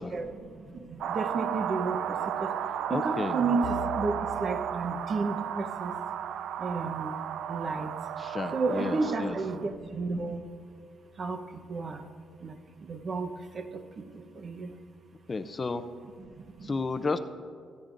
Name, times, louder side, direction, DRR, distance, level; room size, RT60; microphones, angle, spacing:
voice 1, 0.1-2.5 2.9-5.9 6.6-7.1 7.5-7.9 8.5-10.4 11.2-11.4 11.7-12.1 12.4-14.7 16.2-16.7, right 4 dB, 45° right, 5 dB, 0.9 m, -32 dB
sound 1, 1.0-9.7, right 9 dB, 75° right, 0.4 m, -34 dB
voice 2, 2.9-3.4 8.2-9.4 15.3-15.8 16.6-17.2, left 3 dB, 30° left, 10 dB, 0.5 m, -32 dB
sound 2, 3.6-6.1, left 7 dB, 80° left, 0.4 m, -44 dB
23.5 x 9.1 x 2.6 m, 2.1 s
cardioid pair, 90°, 0 cm